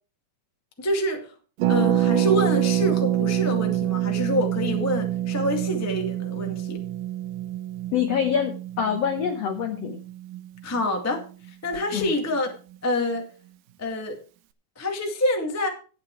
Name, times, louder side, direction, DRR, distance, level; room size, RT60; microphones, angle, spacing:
voice 1, 0.8-1.3 1.7-6.8 10.6-11.2 11.6-12.5 12.8-13.3 13.8-14.2 14.7-15.7, left 1 dB, 15° left, 0.6 m, -26 dB
Harp, 1.6-11.2 11.5-11.6 11.7-12.1, right 12 dB, 75° right, 2.0 m, -26 dB
voice 2, 7.9-10.0 11.9-12.1, left 8 dB, 80° left, 1.4 m, -25 dB
11.5 x 9.0 x 4.7 m
omnidirectional pair, 4.4 m